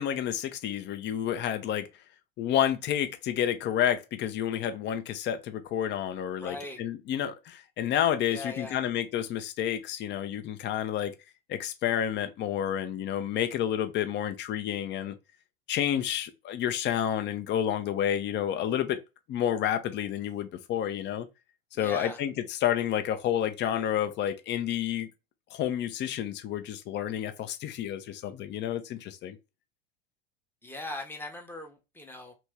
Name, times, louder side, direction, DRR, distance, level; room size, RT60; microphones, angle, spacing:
voice 1, 0.0-1.9 2.4-11.1 11.5-15.1 15.7-19.0 19.3-21.3 21.8-25.1 25.5-29.4, left 10 dB, 40° left, 0.7 m, -30 dB
voice 2, 6.4-6.8 8.3-8.8 21.7-22.2 30.6-32.3, left 2 dB, 5° left, 0.9 m, -39 dB
3.0 x 2.6 x 3.4 m
hypercardioid pair, 100°, 29 cm